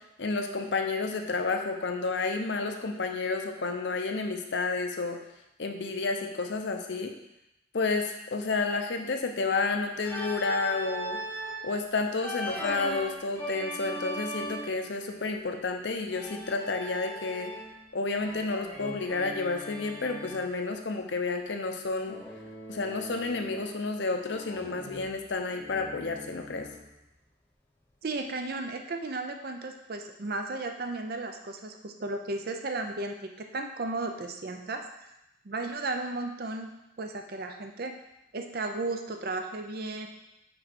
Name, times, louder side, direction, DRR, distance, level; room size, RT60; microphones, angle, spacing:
voice 1, 0.2-5.2 5.6-7.1 7.7-11.2 11.6-17.5 17.9-22.2 22.7-26.7, left 3 dB, 65° left, 4 dB, 0.7 m, -30 dB
Organ, 10.0-11.6 12.2-14.8 16.1-17.8 18.2-20.5 22.1-23.9 24.2-26.9, equal, 10° left, 0.8 m, -40 dB
voice 2, 28.0-34.9 35.4-36.7 37.0-38.0 38.3-40.1, right 2 dB, 50° right, 5 dB, 0.6 m, -34 dB
5.5 x 4.7 x 4.2 m, 0.88 s
head